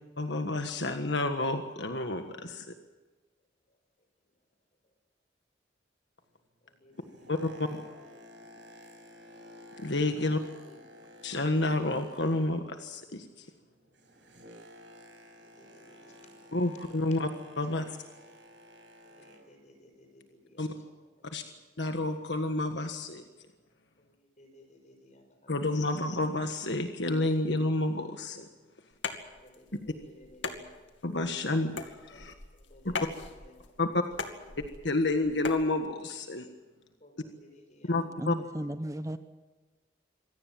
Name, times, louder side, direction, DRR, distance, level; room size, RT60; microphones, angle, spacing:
voice 1, 0.2-2.7 7.3-7.8 9.8-10.4 11.2-13.5 16.5-17.3 17.6-18.0 20.6-20.7 21.3-21.4 21.8-23.2 25.5-28.5 31.0-32.3 32.8-32.9 33.8-34.0 34.8-36.5 37.8-38.3, left 2 dB, 70° left, 6 dB, 1.5 m, -30 dB
voice 2, 6.6-7.4 7.7-8.2 10.2-10.8 15.6-16.5 19.0-20.7 21.3-21.4 24.0-25.6 29.3-30.8 32.1-32.2 32.5-33.7 34.4-34.6 37.0-37.9 38.3-38.4, left 1 dB, 40° left, 5 dB, 5.9 m, -58 dB
Boat Water vehicle, 6.7-12.9 13.2-19.6 20.2-20.4, left 1 dB, 75° right, 5.9 m, -53 dB
sound 1, 28.9-35.7, left 4 dB, 85° left, 2.4 m, -40 dB
voice 3, 38.2-39.2, right 1 dB, 15° right, 10 dB, 0.8 m, -35 dB
26.0 x 17.5 x 7.6 m, 1.3 s
head